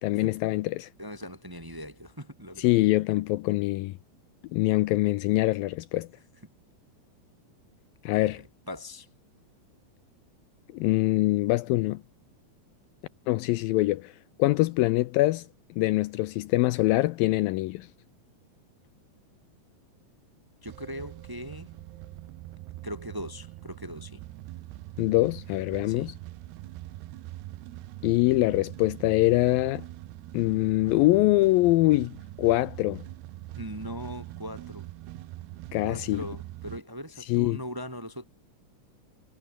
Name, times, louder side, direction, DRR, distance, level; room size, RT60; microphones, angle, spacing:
voice 1, 0.0-0.9 2.6-3.9 4.5-6.1 8.0-8.4 10.7-12.0 13.3-14.1 14.4-15.5 15.8-17.9 25.0-26.1 28.0-29.9 30.3-33.0 35.7-36.2 37.2-37.6, left 18 dB, 85° left, 2.1 m, -24 dB
voice 2, 1.0-2.7 8.2-9.1 20.6-21.7 22.8-24.2 25.9-26.1 33.5-34.9 35.8-38.2, equal, 35° right, 0.3 m, -40 dB
sound 1, 20.6-36.8, right 17 dB, 85° right, 2.9 m, -43 dB
omnidirectional pair, 4.7 m